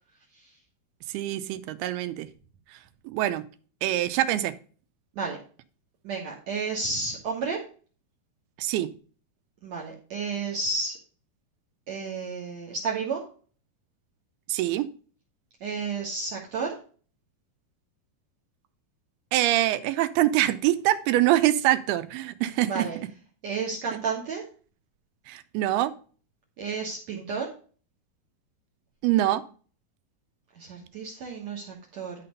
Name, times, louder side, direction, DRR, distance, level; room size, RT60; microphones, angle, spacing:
voice 1, 1.1-2.3 3.0-3.4 3.8-4.5 8.6-8.9 14.5-14.9 19.3-23.1 23.9-24.0 25.3-25.9 29.0-29.4, right 14 dB, 85° right, 13 dB, 2.6 m, -24 dB
voice 2, 6.0-7.6 9.6-11.0 11.9-13.2 15.6-16.8 22.6-23.0 23.4-24.4 26.6-27.5 30.6-32.1, right 4 dB, 60° right, -1 dB, 2.0 m, -31 dB
11.5 x 4.2 x 5.3 m, 0.40 s
omnidirectional pair, 4.5 m